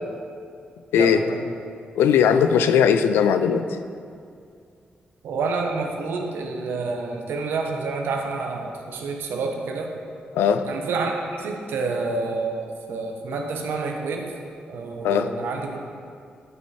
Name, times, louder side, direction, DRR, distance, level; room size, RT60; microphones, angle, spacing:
voice 1, 1.0-1.4 5.2-9.9 10.6-14.3 14.7-15.8, right 3 dB, 80° right, 2 dB, 0.9 m, -28 dB
voice 2, 2.0-3.7 10.3-10.7 15.0-15.3, left 7 dB, 90° left, 10 dB, 0.4 m, -18 dB
11.0 x 5.3 x 4.2 m, 2.4 s
supercardioid pair, 45°, 4 cm